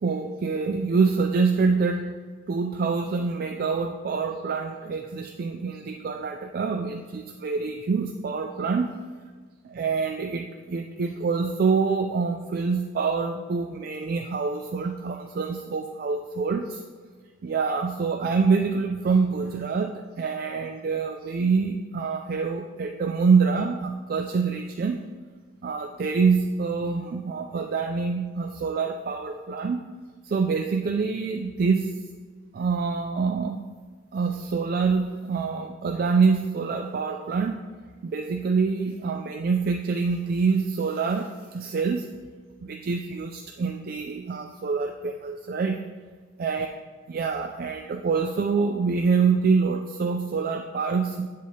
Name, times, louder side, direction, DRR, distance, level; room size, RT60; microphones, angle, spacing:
voice 1, 0.0-2.1 2.5-9.0 9.6-16.8 17.4-25.0 25.6-29.8 30.2-32.0 32.5-33.7 34.1-37.6 38.0-42.1 42.6-45.8 46.4-46.7 47.1-51.3, right 5 dB, 45° right, 5 dB, 0.3 m, -26 dB
7.7 x 7.3 x 2.8 m, 1.6 s
head